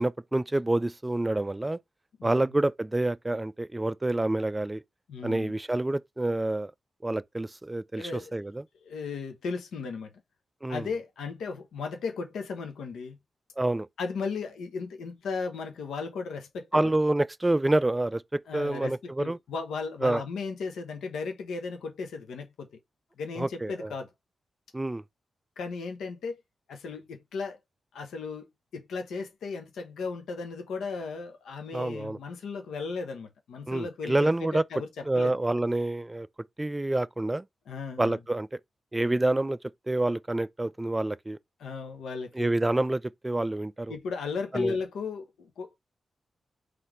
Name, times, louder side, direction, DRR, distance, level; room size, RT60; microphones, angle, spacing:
voice 1, 0.0-1.8 2.2-4.8 5.2-6.7 7.0-8.6 10.6-10.8 13.6-13.9 16.7-18.2 18.5-19.4 20.0-20.2 23.4-23.9 24.7-25.0 31.7-32.2 33.7-34.6 35.1-36.3 36.6-37.4 38.0-38.5 38.9-39.6 39.9-41.4 42.4-43.9 44.5-44.7, right 2 dB, 20° right, 0.3 m, -27 dB
voice 2, 5.1-5.5 8.0-8.4 8.8-10.1 10.7-13.2 14.0-16.9 18.5-22.7 23.2-24.1 25.6-26.4 26.7-27.6 27.9-28.5 28.7-35.3 37.7-38.2 41.6-42.5 43.9-45.8, left 4 dB, 90° left, 0.9 m, -36 dB
4.0 x 3.2 x 3.1 m
cardioid pair, 55°, 0 cm